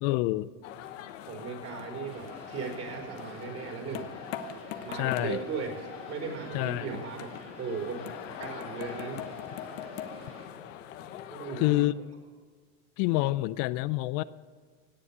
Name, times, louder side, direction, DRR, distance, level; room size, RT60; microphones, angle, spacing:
voice 1, 0.0-0.5 4.9-5.4 6.5-6.8 11.6-11.9 13.0-14.2, left 18 dB, 65° left, 16 dB, 0.6 m, -27 dB
sound 1, 0.6-11.9, left 10 dB, 85° left, 1.1 m, -42 dB
voice 2, 1.2-4.1 4.8-7.3 7.6-8.0 8.4-9.2 11.3-11.8, right 5 dB, 40° right, 1 dB, 4.5 m, -37 dB
sound 2, 2.0-10.5, right 3 dB, 75° right, 4.3 m, -50 dB
17.5 x 8.4 x 8.7 m, 1.5 s
supercardioid pair, 100°, 37 cm